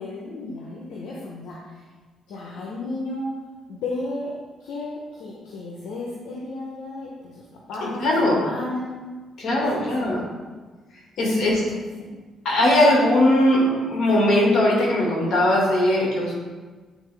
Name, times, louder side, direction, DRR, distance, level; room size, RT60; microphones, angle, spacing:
voice 1, 0.0-1.8 2.3-3.3 3.7-4.3 4.6-9.0 9.5-10.4 11.3-12.2, left 2 dB, 85° left, -4 dB, 0.9 m, -34 dB
voice 2, 8.0-8.4 9.4-10.2 11.2-11.5 12.4-16.3, left 1 dB, 70° left, -3 dB, 2.1 m, -19 dB
8.7 x 3.9 x 3.5 m, 1.4 s
cardioid pair, 90°, 0 cm